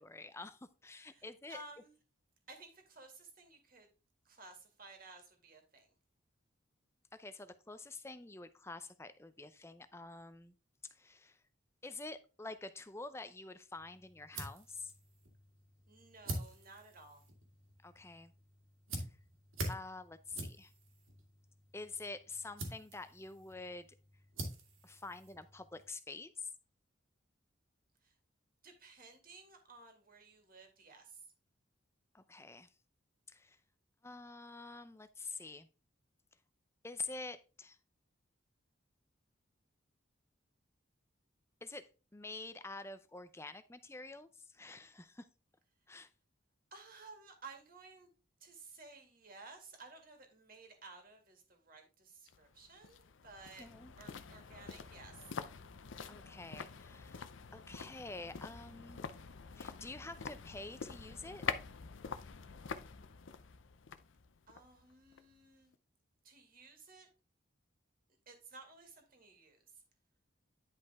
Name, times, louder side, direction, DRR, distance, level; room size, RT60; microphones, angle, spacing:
voice 1, 0.0-1.6 7.1-10.5 10.8-11.4 11.8-14.9 17.8-18.3 19.7-20.7 21.7-23.9 24.8-26.5 32.1-32.7 33.3-33.6 34.0-35.7 36.8-37.8 41.6-45.3 45.9-46.1 53.6-53.9 56.1-59.1 59.6-61.4, left 3 dB, 15° left, 12 dB, 0.5 m, -47 dB
voice 2, 1.0-1.9 2.5-3.9 4.3-5.9 15.9-17.2 28.0-28.1 28.6-31.2 46.7-48.1 48.4-53.7 54.0-55.2 64.5-65.7 66.2-67.1 68.3-69.6, right 3 dB, 45° right, 3 dB, 2.1 m, -55 dB
sound 1, 13.8-25.9, right 1 dB, 80° right, 2.4 m, -47 dB
sound 2, 52.3-65.4 65.7-65.8, left 6 dB, 70° left, 0.6 m, -46 dB
10.5 x 5.2 x 3.5 m, 0.33 s
head